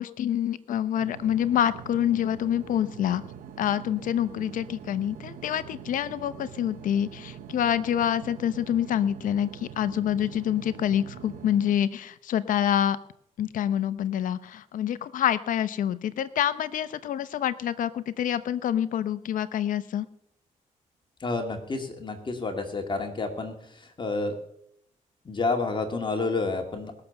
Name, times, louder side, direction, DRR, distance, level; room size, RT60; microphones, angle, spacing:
voice 1, 0.0-3.2 3.6-13.0 13.4-20.1, left 10 dB, 75° left, 15 dB, 0.8 m, -27 dB
sound 1, 0.9-11.7, right 9 dB, 85° right, 0.9 m, -44 dB
voice 2, 21.2-24.3 25.2-27.0, left 3 dB, 35° left, 4 dB, 2.3 m, -30 dB
20.0 x 6.8 x 7.0 m, 0.75 s
cardioid pair, 80°, 14 cm